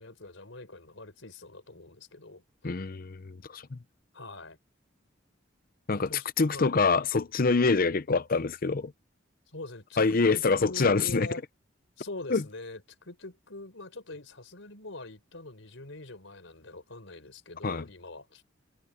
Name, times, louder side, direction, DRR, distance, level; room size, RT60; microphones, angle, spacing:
voice 1, 0.0-2.4 4.1-4.6 6.1-6.8 9.5-10.0 10.3-11.4 12.0-18.4, left 2 dB, 90° left, 4.6 m, -43 dB
voice 2, 2.6-3.8 5.9-8.9 10.0-11.3 12.3-12.4 17.6-17.8, left 4 dB, 50° left, 0.7 m, -25 dB
head